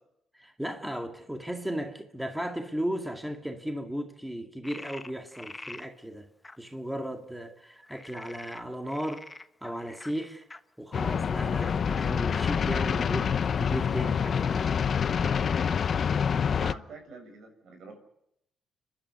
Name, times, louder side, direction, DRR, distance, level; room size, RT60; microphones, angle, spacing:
voice 1, 0.3-6.3 6.6-9.3 9.6-10.4 10.8-14.7, equal, 5° right, 2.2 m, -35 dB
Frog, 4.6-5.9 6.4-6.6 7.9-10.6 11.5-11.7 12.0-12.1 12.3-12.4 12.7-12.8 13.4-14.2, left 2 dB, 20° left, 1.2 m, -45 dB
sound 1, 10.9-16.7, left 7 dB, 50° left, 0.8 m, -27 dB
voice 2, 16.4-18.0, right 4 dB, 70° right, 6.8 m, -46 dB
29.5 x 11.5 x 9.3 m
cardioid pair, 90°, 0 cm